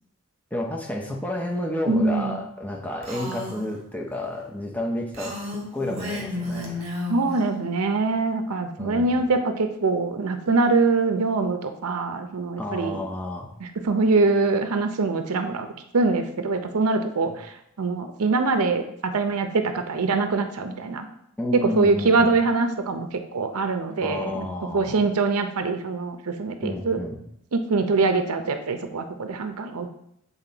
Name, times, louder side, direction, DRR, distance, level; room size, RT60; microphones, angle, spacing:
voice 1, 0.5-6.8 8.8-9.1 12.6-13.5 21.4-22.4 24.0-25.0 26.6-27.2, left 1 dB, 5° left, 0 dB, 0.6 m, -30 dB
voice 2, 1.9-2.4 7.1-13.0 13.6-15.7 15.9-21.1 21.5-24.5 24.7-27.0 27.5-29.9, right 3 dB, 85° right, 7 dB, 0.6 m, -23 dB
Female speech woman speaking, 3.0-3.7 5.1-7.4, left 1 dB, 25° right, 1.6 m, -32 dB
7.4 x 4.2 x 3.9 m, 0.76 s
head